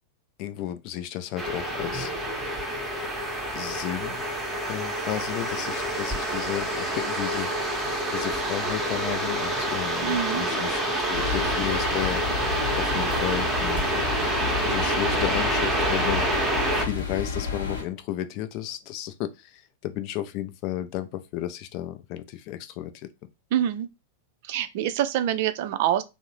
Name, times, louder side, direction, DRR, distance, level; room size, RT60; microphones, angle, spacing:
voice 1, 0.4-2.1 3.5-4.2 4.7-7.5 8.1-13.9 14.6-23.1, left 13 dB, 45° left, 0.4 m, -33 dB
sound 1, 1.4-16.8, right 1 dB, 5° right, 0.7 m, -27 dB
voice 2, 10.0-10.4 23.5-23.9 24.5-26.0, right 11 dB, 50° right, 0.4 m, -25 dB
sound 2, 11.1-17.8, left 4 dB, 70° left, 0.8 m, -31 dB
2.6 x 2.0 x 3.0 m
figure-of-eight pair, 95°, 0 cm